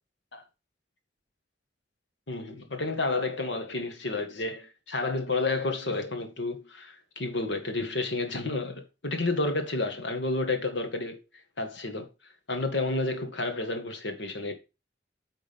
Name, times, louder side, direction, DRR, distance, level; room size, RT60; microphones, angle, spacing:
voice 1, 2.3-11.2 11.6-12.1 12.5-14.5, left 2 dB, 85° left, 1.7 m, -30 dB
9.5 x 3.9 x 5.3 m
head